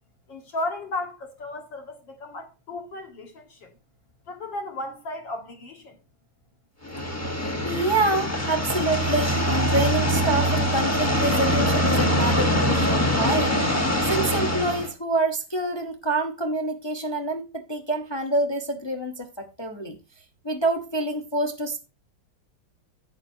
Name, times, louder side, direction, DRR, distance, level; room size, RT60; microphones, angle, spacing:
voice 1, 0.3-3.7 4.3-6.0, left 2 dB, 60° left, 2.4 m, -34 dB
sound 1, 6.8-14.9, equal, 10° left, 0.8 m, -23 dB
voice 2, 7.4-13.6 14.1-20.0 20.4-21.8, right 2 dB, 30° left, 0.4 m, -27 dB
11.0 x 8.2 x 2.7 m
omnidirectional pair, 2.3 m